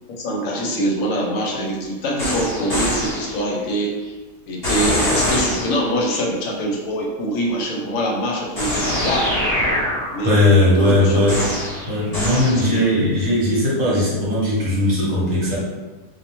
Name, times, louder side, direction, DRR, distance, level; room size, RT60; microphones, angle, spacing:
voice 1, 0.2-4.2 4.5-9.4 10.1-11.2 12.6-12.8, right 1 dB, 70° left, -2 dB, 1.0 m, -24 dB
sound 1, 2.2-3.5 4.6-6.0 8.6-10.4 11.3-12.8, left 1 dB, 30° left, 1.0 m, -23 dB
voice 2, 10.2-11.4 11.9-15.6, left 1 dB, 65° right, -6 dB, 1.2 m, -18 dB
2.6 x 2.1 x 2.9 m, 1.3 s
omnidirectional pair, 1.5 m